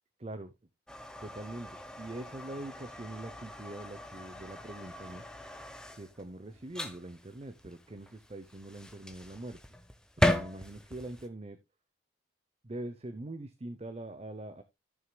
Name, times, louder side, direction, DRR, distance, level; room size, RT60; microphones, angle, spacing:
voice 1, 0.2-0.5 1.2-5.2 5.9-9.6 10.2-11.6 12.6-14.6, right 1 dB, 30° right, 0.7 m, -43 dB
sound 1, 0.9-11.3, left 1 dB, 5° left, 0.8 m, -37 dB
14.5 x 6.4 x 2.2 m
head